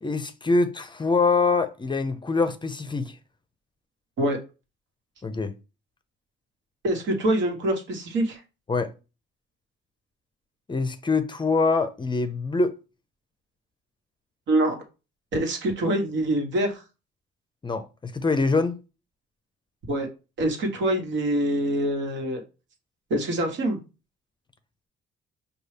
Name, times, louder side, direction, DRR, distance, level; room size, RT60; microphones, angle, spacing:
voice 1, 0.0-3.2 5.2-5.5 8.7-8.9 10.7-12.7 17.6-18.8, left 3 dB, 25° left, 0.5 m, -24 dB
voice 2, 6.8-8.4 14.5-14.8 15.3-16.8 19.9-20.1 20.4-22.4 23.1-23.8, right 1 dB, 70° right, 1.3 m, -25 dB
5.3 x 2.3 x 3.3 m
cardioid pair, 90°, 20 cm